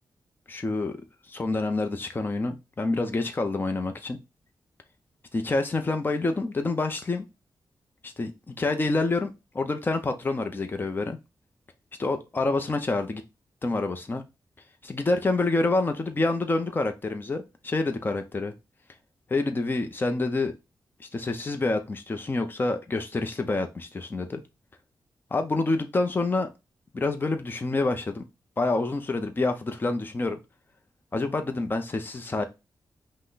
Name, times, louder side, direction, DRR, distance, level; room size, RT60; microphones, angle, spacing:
voice 1, 0.5-1.0 1.3-4.2 5.3-7.3 8.0-11.2 12.0-13.2 13.6-14.2 14.8-18.5 19.3-20.5 21.0-24.4 25.3-26.5 26.9-28.2 28.6-30.4 31.1-32.4, left 2 dB, 25° left, 0.6 m, -27 dB
5.5 x 2.1 x 3.9 m
wide cardioid pair, 100°, 7 cm